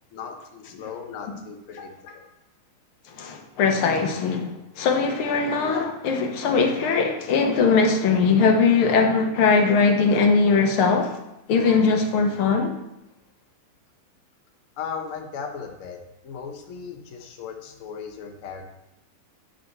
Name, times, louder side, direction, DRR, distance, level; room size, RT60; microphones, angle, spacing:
voice 1, 0.1-2.2 14.8-16.0 16.2-18.7, left 6 dB, 45° left, 3 dB, 1.1 m, -37 dB
voice 2, 3.1-11.2 11.5-12.7, left 4 dB, 80° left, 3 dB, 1.9 m, -20 dB
9.6 x 4.3 x 5.8 m, 0.88 s
omnidirectional pair, 2.4 m